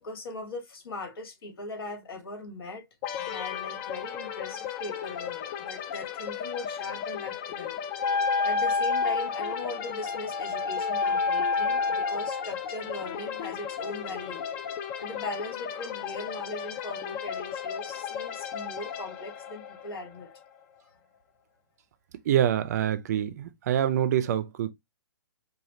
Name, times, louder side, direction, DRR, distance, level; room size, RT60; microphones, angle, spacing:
voice 1, 0.0-2.8 3.2-7.7 8.4-14.6 15.0-20.3, left 2 dB, 70° left, 1.9 m, -40 dB
sound 1, 3.0-20.6, left 8 dB, 25° left, 0.5 m, -36 dB
Wind instrument woodwind instrument, 8.0-12.5, left 4 dB, 45° left, 1.2 m, -28 dB
voice 2, 22.3-24.7, right 10 dB, 45° right, 0.5 m, -25 dB
4.9 x 2.4 x 2.8 m
hypercardioid pair, 155°, 13 cm